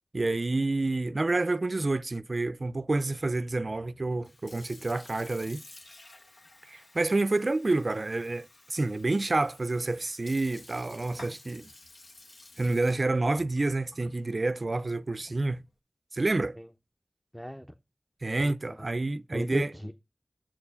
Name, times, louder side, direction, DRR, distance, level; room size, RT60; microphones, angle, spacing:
voice 1, 0.1-5.6 6.6-11.7 12.6-15.7 16.1-16.5 18.2-19.7, right 2 dB, 60° right, 0.3 m, -28 dB
Sink (filling or washing) / Fill (with liquid), 4.1-15.7, left 2 dB, 90° left, 1.3 m, -52 dB
voice 2, 17.3-17.8 18.4-18.9 19.3-19.9, equal, 5° left, 0.7 m, -37 dB
7.4 x 4.5 x 5.5 m
wide cardioid pair, 55°, 0 cm